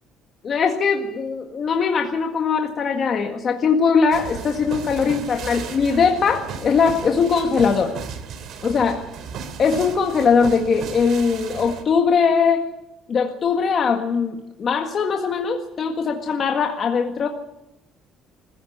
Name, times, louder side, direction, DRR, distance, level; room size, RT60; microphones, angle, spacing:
voice 1, 0.4-8.0 8.6-9.0 9.6-12.7 13.1-17.3, left 5 dB, 40° left, 2 dB, 1.8 m, -20 dB
sound 1, 4.1-11.8, right 6 dB, 65° right, 2.8 m, -35 dB
21.5 x 15.5 x 8.6 m, 0.88 s
cardioid pair, 140°, 0 cm